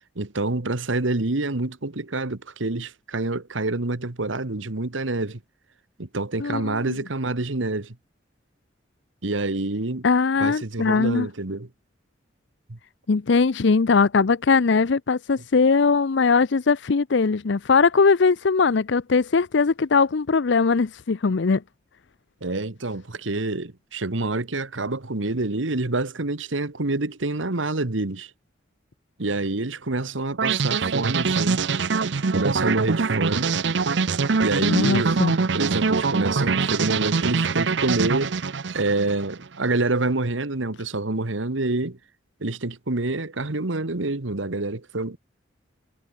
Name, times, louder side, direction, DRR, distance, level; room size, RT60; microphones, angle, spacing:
voice 1, 0.1-5.4 6.0-8.0 9.2-10.0 10.4-11.7 12.7-12.8 22.4-28.3 29.2-31.7 32.3-33.5 34.4-35.2 35.5-38.4 38.7-42.0 42.4-45.2, right 2 dB, 90° right, 1.6 m, -27 dB
voice 2, 6.4-6.9 10.0-11.3 13.1-21.6 34.6-35.3, left 4 dB, 65° left, 0.6 m, -20 dB
sound 1, 30.4-39.4, right 4 dB, 65° right, 0.7 m, -23 dB
head